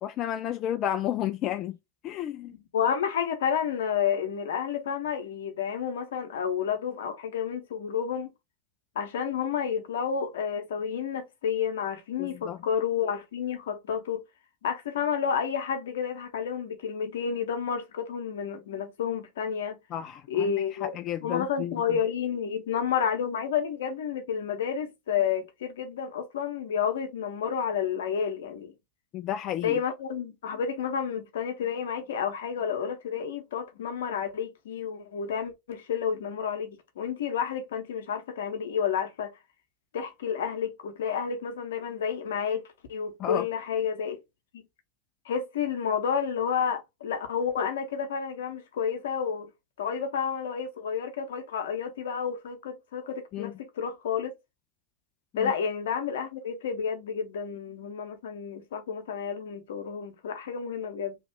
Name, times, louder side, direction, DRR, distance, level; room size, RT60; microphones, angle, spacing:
voice 1, 0.0-1.8 2.0-2.6 12.2-12.6 19.9-21.8 29.1-29.8 43.2-43.5 53.3-53.5 55.3-55.5, left 11 dB, 45° left, 0.3 m, -32 dB
voice 2, 2.5-8.3 8.9-14.2 14.6-19.8 20.3-20.9 21.2-28.7 29.6-39.3 39.9-42.6 42.9-44.2 45.2-49.5 49.8-54.3 55.4-61.2, left 7 dB, 70° left, 0.9 m, -30 dB
3.0 x 2.4 x 3.6 m
hypercardioid pair, 90°, 0 cm